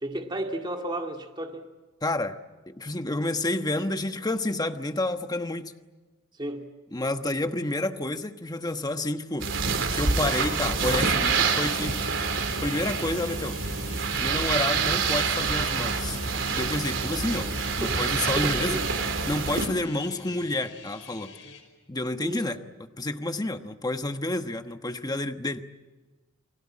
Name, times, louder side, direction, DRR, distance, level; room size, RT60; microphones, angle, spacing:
voice 1, 0.0-1.7 6.4-6.7 17.8-18.0 18.4-18.9 22.2-22.4, right 1 dB, 25° right, 3 dB, 2.1 m, -33 dB
voice 2, 2.0-2.4 2.7-5.7 6.9-9.5 9.9-12.0 12.6-13.6 14.2-16.2 16.5-17.5 17.8-18.8 19.3-21.3 21.9-25.7, left 2 dB, 20° left, 7 dB, 1.2 m, -29 dB
sound 1, 9.4-19.7, right 4 dB, 75° right, 3.6 m, -27 dB
sound 2, 11.8-21.6, left 4 dB, 70° left, 5.6 m, -47 dB
30.0 x 21.0 x 8.7 m, 1.2 s
head